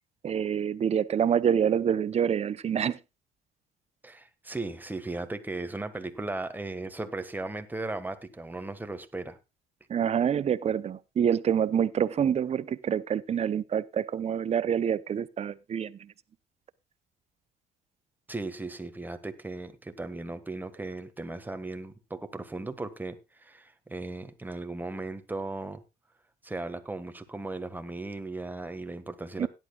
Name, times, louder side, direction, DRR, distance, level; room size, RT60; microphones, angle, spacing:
voice 1, 0.2-3.0 9.9-16.1 29.4-29.5, right 8 dB, 40° right, 0.7 m, -27 dB
voice 2, 4.0-9.4 18.3-25.8 26.4-29.5, right 2 dB, 10° right, 1.5 m, -37 dB
17.0 x 11.0 x 2.3 m
cardioid pair, 110°, 17 cm